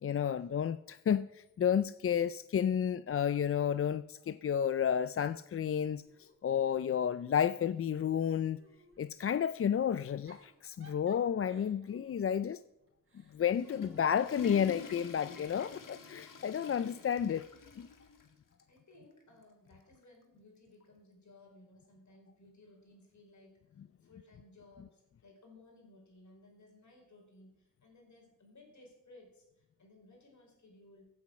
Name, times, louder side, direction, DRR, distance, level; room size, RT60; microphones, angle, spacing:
voice 1, 0.0-8.6 9.0-12.6 13.3-17.5 17.8-17.9, left 8 dB, 45° left, 0.4 m, -31 dB
Giggle / Chuckle chortle, 5.6-7.2 7.6-9.1 10.0-14.5 15.6-17.0, right 2 dB, 40° right, 3.2 m, -63 dB
Water / Toilet flush, 13.3-18.3 18.6-18.7 19.4-19.5 20.8-20.9, left 5 dB, 75° left, 2.0 m, -48 dB
voice 2, 17.9-18.3 18.6-31.1, left 2 dB, 60° left, 5.0 m, -60 dB
16.0 x 8.5 x 6.3 m
wide cardioid pair, 100°, 32 cm